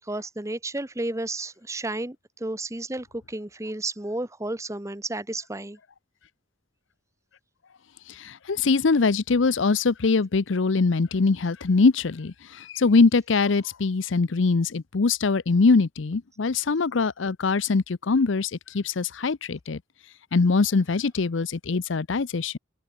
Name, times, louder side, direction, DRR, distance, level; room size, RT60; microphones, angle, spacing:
voice 1, 0.1-5.8, right 2 dB, 15° right, 1.0 m, -32 dB
voice 2, 8.1-19.8 20.3-22.6, left 4 dB, 75° left, 0.6 m, -23 dB
head